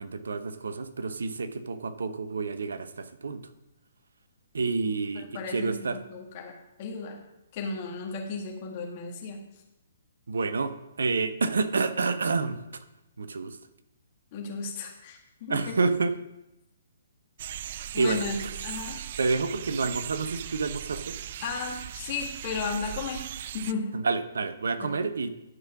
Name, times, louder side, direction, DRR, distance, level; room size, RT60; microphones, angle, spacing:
voice 1, 0.0-3.4 4.5-6.0 10.3-12.6 13.2-13.6 15.5-16.2 18.0-18.3 19.2-21.2 23.9-25.3, right 4 dB, 70° right, 11 dB, 0.9 m, -28 dB
voice 2, 5.1-7.2 7.5-9.4 14.3-15.8 17.9-19.0 21.4-23.3 23.5-23.9 24.8-24.9, left 4 dB, 40° left, 0 dB, 2.0 m, -35 dB
sound 1, 17.4-23.7, right 11 dB, 45° right, 0.4 m, -38 dB
11.0 x 5.5 x 5.9 m, 0.93 s
figure-of-eight pair, 130°, 0 cm